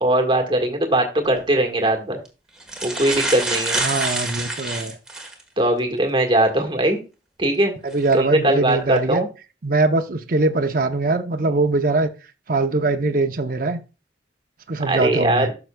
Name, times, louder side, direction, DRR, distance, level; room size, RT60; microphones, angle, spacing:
voice 1, 0.0-2.2 2.8-3.8 5.6-7.0 7.4-7.7 8.1-9.3 14.9-15.5, right 1 dB, 25° right, 3 dB, 1.5 m, -20 dB
sound 1, 1.2-1.4 2.2-2.3 2.6-5.4 6.0-6.1 7.9-8.1 8.7-9.0, right 2 dB, 5° right, 1.3 m, -27 dB
voice 2, 3.8-5.0 7.8-9.2 9.6-12.1 12.5-13.8 14.7-15.5, right 3 dB, 50° right, 6 dB, 0.7 m, -22 dB
12.0 x 5.9 x 2.3 m, 0.30 s
head